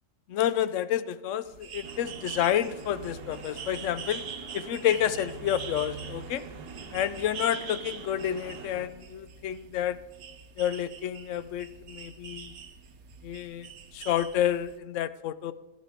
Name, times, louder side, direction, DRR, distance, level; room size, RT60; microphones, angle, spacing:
voice 1, 0.3-4.2 4.5-6.4 6.9-10.0 10.6-12.5 13.2-15.5, left 11 dB, 65° left, 14 dB, 0.8 m, -29 dB
sound 1, 1.5-14.8, right 6 dB, 65° right, 1.3 m, -44 dB
sound 2, 1.8-8.9, right 4 dB, 80° right, 1.7 m, -44 dB
14.0 x 12.5 x 3.6 m, 1.2 s
omnidirectional pair, 1.7 m